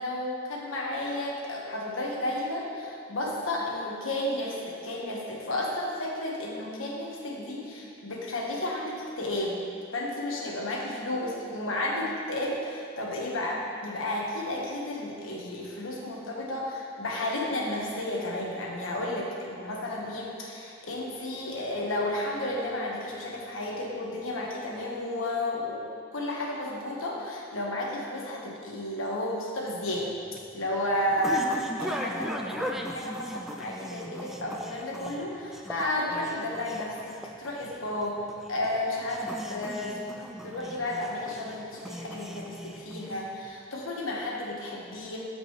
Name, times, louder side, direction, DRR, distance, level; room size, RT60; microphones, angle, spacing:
voice 1, 0.0-9.6 9.9-30.1 30.5-39.9 40.4-45.2, left 1 dB, 80° left, -2 dB, 1.4 m, -32 dB
sound 1, 29.9-43.5, equal, ahead, 0.3 m, -39 dB
13.5 x 5.2 x 3.2 m, 2.5 s
head